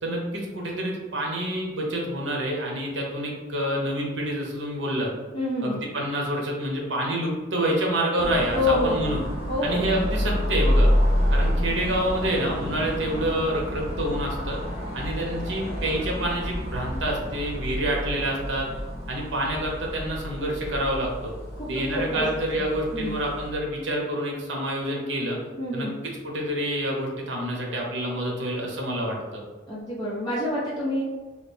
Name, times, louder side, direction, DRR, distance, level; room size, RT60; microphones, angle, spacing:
voice 1, 0.0-5.1 5.6-9.2 9.6-10.9 11.3-14.6 14.9-18.7 19.1-21.3 21.7-25.4 25.7-25.9 26.2-29.4, right 1 dB, 75° right, -1 dB, 0.9 m, -27 dB
voice 2, 5.3-5.8 8.5-9.1 9.5-9.8 21.6-22.3 22.6-23.2 25.6-25.9 29.7-31.0, left 2 dB, 20° left, -9 dB, 0.8 m, -27 dB
sound 1, 8.2-23.5, equal, 35° right, 0.8 m, -28 dB
3.2 x 2.3 x 3.4 m, 1.3 s
head